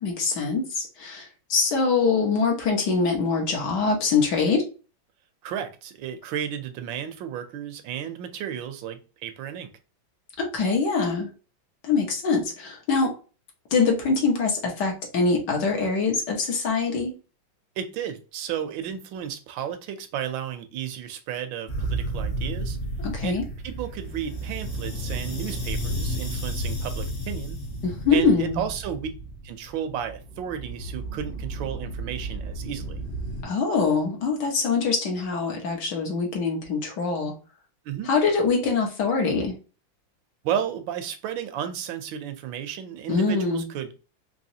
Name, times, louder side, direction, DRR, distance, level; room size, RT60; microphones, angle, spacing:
voice 1, 0.0-4.6 10.4-11.3 11.8-13.1 13.7-17.1 23.0-23.4 27.8-28.6 33.4-37.3 38.1-39.5 43.1-43.6, left 4 dB, 65° left, 1 dB, 1.6 m, -24 dB
voice 2, 5.4-9.7 17.8-22.8 23.2-27.6 28.1-29.1 29.4-33.0 37.8-38.1 40.4-44.0, right 9 dB, 80° right, 9 dB, 1.4 m, -33 dB
sound 1, 21.7-33.4, right 1 dB, 40° left, 0.9 m, -32 dB
4.0 x 2.9 x 2.7 m, 0.34 s
omnidirectional pair, 2.1 m